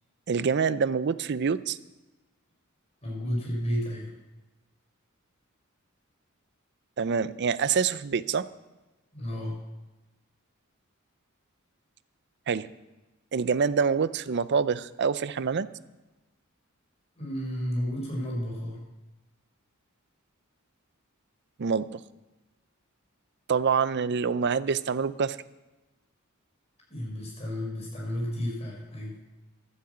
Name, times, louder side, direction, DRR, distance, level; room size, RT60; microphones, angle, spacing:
voice 1, 0.3-1.8 7.0-8.5 12.5-12.7 13.3-15.7 21.6-22.0 23.5-25.4, right 6 dB, 55° right, 15 dB, 0.5 m, -26 dB
voice 2, 3.0-4.1 9.1-9.5 17.2-18.8 26.9-29.1, equal, 30° left, -3 dB, 4.8 m, -32 dB
12.5 x 8.9 x 7.9 m, 1.1 s
head